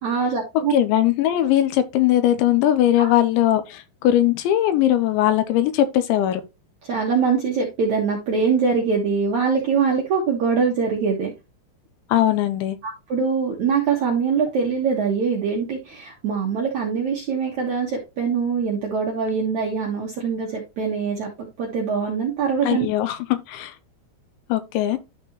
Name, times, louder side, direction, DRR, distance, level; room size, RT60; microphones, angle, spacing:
voice 1, 0.0-0.7 3.0-3.1 6.9-11.3 12.8-22.9, right 5 dB, 70° right, 1.8 m, -23 dB
voice 2, 0.7-6.4 12.1-12.8 22.6-23.7 24.5-25.0, left 12 dB, 80° left, 3.0 m, -20 dB
12.0 x 4.3 x 3.0 m
omnidirectional pair, 5.4 m